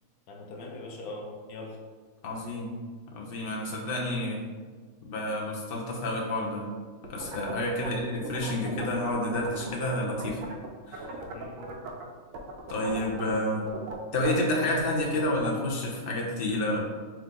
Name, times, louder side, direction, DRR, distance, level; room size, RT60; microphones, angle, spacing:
voice 1, 0.3-1.8 7.7-8.1 11.3-12.0, left 2 dB, 85° left, 0 dB, 1.1 m, -42 dB
voice 2, 2.2-2.7 3.1-4.4 5.0-6.7 7.1-10.4 10.9-11.1 12.7-13.7 14.1-16.8, left 1 dB, 50° left, -1 dB, 0.9 m, -29 dB
sound 1, 7.0-10.7 10.9-12.0 12.3-15.7, right 3 dB, 75° right, 1.0 m, -39 dB
3.6 x 3.1 x 3.7 m, 1.5 s
omnidirectional pair, 1.5 m